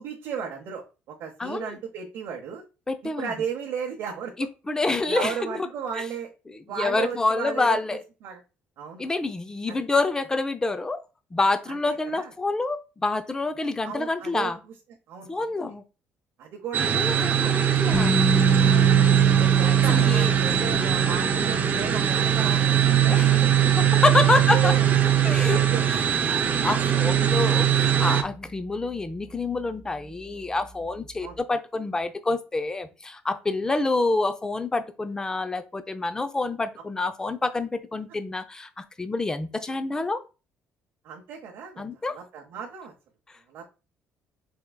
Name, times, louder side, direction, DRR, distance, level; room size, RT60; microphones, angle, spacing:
voice 1, 0.0-2.6 3.0-4.5 5.1-6.3 6.7-7.8 8.2-8.4 8.8-9.0 9.7-9.8 11.7-12.3 13.8-14.5 15.1-15.5 16.4-17.5 18.6-18.9 19.4-23.2 24.0-25.1 25.5-26.0 26.7-26.9 31.2-31.4 41.0-41.8 42.1-42.9 43.5-43.7, right 7 dB, 70° right, -1 dB, 0.8 m, -35 dB
voice 2, 1.4-1.7 2.9-3.3 4.7-5.7 6.0-6.1 6.5-8.0 9.0-11.0 11.3-14.6 15.3-15.8 16.9-18.2 19.9-20.3 23.1-23.3 23.9-24.7 25.2-25.6 25.9-40.2 41.8-42.2, left 3 dB, 15° left, 10 dB, 0.5 m, -27 dB
sound 1, 16.7-28.2, right 10 dB, 45° right, 0.5 m, -21 dB
sound 2, 17.9-29.8, left 2 dB, 55° left, 1.6 m, -31 dB
4.5 x 3.4 x 2.2 m, 0.30 s
cardioid pair, 115°, 4 cm